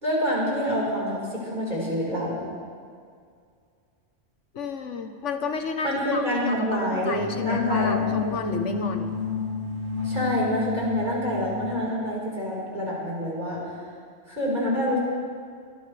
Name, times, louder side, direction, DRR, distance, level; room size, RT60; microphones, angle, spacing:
voice 1, 0.0-2.4 5.8-8.1 10.0-13.6 14.3-15.0, equal, 40° right, -5 dB, 4.8 m, -26 dB
voice 2, 4.5-9.2, left 4 dB, 75° left, 6 dB, 1.4 m, -31 dB
sound 1, 7.1-11.9, left 6 dB, 40° left, 4.5 m, -30 dB
24.0 x 17.0 x 3.4 m, 2.2 s
omnidirectional pair, 1.3 m